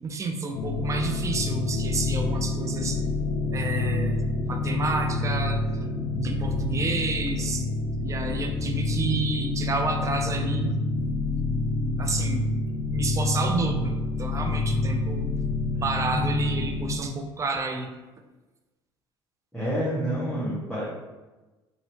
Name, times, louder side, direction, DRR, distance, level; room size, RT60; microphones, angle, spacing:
voice 1, 0.0-3.0 3.5-10.8 12.0-12.5 12.8-13.9 14.2-15.2 15.7-17.9, right 3 dB, 25° right, 4 dB, 0.4 m, -30 dB
sound 1, 0.5-17.0, left 3 dB, 60° left, 0.5 m, -27 dB
voice 2, 19.5-20.8, equal, 5° left, -11 dB, 1.1 m, -28 dB
3.0 x 2.6 x 2.8 m, 1.2 s
hypercardioid pair, 65°, 13 cm